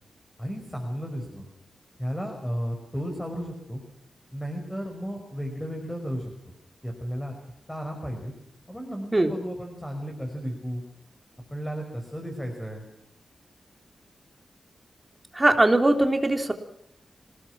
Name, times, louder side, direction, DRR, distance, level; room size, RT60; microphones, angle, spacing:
voice 1, 0.4-1.5 2.0-3.8 4.3-6.3 6.8-7.3 7.7-8.3 8.7-10.8 11.5-12.8, equal, 5° left, 3 dB, 5.4 m, -33 dB
voice 2, 15.3-16.5, right 2 dB, 20° right, 5 dB, 3.4 m, -20 dB
28.0 x 18.5 x 6.2 m, 0.78 s
wide cardioid pair, 95°, 0 cm